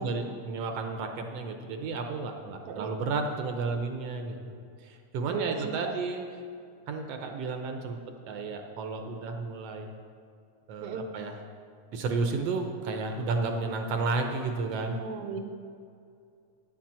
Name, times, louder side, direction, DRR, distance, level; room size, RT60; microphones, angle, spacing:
voice 1, 0.0-4.4 4.8-6.2 6.9-8.0 8.3-9.9 10.7-11.3 11.9-15.0, right 4 dB, 70° right, 4 dB, 1.6 m, -32 dB
voice 2, 5.3-5.9 10.8-11.1 14.9-15.4, right 6 dB, 85° right, 5 dB, 2.2 m, -36 dB
10.0 x 7.3 x 7.4 m, 2.4 s
omnidirectional pair, 3.4 m